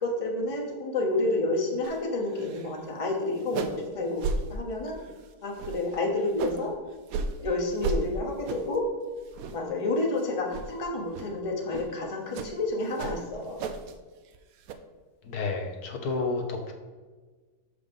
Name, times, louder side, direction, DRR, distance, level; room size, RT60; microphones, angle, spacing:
voice 1, 0.0-4.2 4.5-5.0 5.4-6.7 7.4-8.8 9.5-13.6, left 2 dB, 25° left, 0 dB, 1.0 m, -29 dB
sound 1, 1.8-2.0 2.3-2.8 3.0-3.1 3.4-3.9 4.2-4.4 4.9-5.2 5.6-6.6 7.1-7.3 7.8-8.0 8.4-8.8 9.2-9.7 10.0-10.2 10.5-10.7 11.1-11.3 11.7-11.9 12.3-12.5 12.9-13.9 14.2-14.7, right 4 dB, 70° right, 1.0 m, -33 dB
voice 2, 15.2-16.7, left 3 dB, 70° left, 2 dB, 1.4 m, -30 dB
6.6 x 5.1 x 5.3 m, 1.4 s
omnidirectional pair, 1.7 m